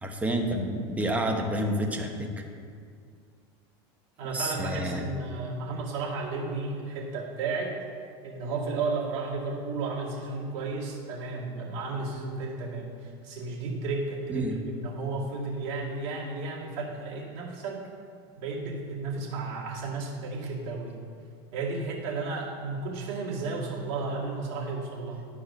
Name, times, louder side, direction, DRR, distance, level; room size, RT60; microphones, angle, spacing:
voice 1, 0.0-2.4 4.3-5.0 14.3-14.6, right 1 dB, 10° right, 2 dB, 1.0 m, -29 dB
voice 2, 4.2-7.8 8.2-17.9 18.4-21.0 21.5-25.3, right 3 dB, 60° right, -4 dB, 2.1 m, -33 dB
11.0 x 4.8 x 6.5 m, 2.2 s
supercardioid pair, 130°, 14 cm